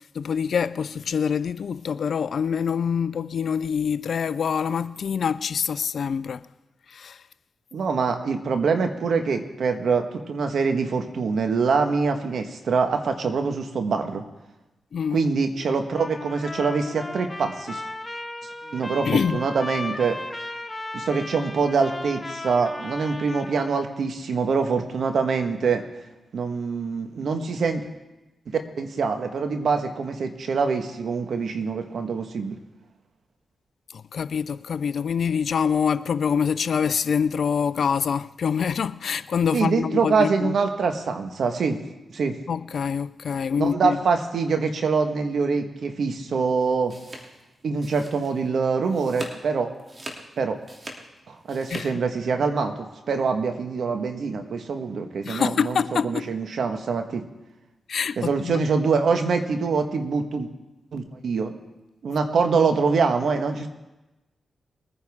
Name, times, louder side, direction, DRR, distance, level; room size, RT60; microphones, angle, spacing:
voice 1, 0.1-6.4 6.9-7.2 14.9-15.2 19.1-19.4 33.9-40.5 42.5-44.0 51.7-52.0 55.2-56.3 57.9-58.6, left 7 dB, 70° left, 0.4 m, -25 dB
voice 2, 7.7-14.2 15.1-17.8 18.6-20.2 20.9-25.8 26.3-27.8 28.5-32.6 39.5-41.8 42.1-42.4 43.6-46.9 47.6-49.7 50.4-50.6 51.3-57.2 58.2-60.5 60.9-61.6 62.0-63.7, right 5 dB, 70° right, 1.4 m, -24 dB
Trumpet, 15.9-23.9, left 2 dB, 20° left, 1.3 m, -36 dB
sound 1, 46.6-48.5 48.8-49.4 49.8-51.9, right 1 dB, 40° right, 2.7 m, -41 dB
21.5 x 9.7 x 3.6 m
supercardioid pair, 45°, 0 cm